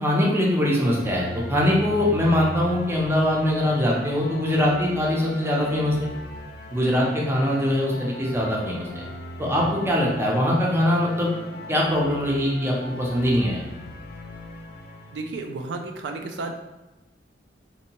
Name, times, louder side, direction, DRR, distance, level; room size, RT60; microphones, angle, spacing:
voice 1, 0.0-6.1 6.7-9.0 9.4-11.3 11.7-13.6, left 1 dB, 15° right, -3 dB, 0.5 m, -22 dB
sound 1, 0.8-15.3, left 1 dB, 65° left, 0.4 m, -39 dB
voice 2, 15.1-16.5, right 3 dB, 75° right, 4 dB, 0.4 m, -32 dB
2.6 x 2.1 x 2.8 m, 1.0 s
head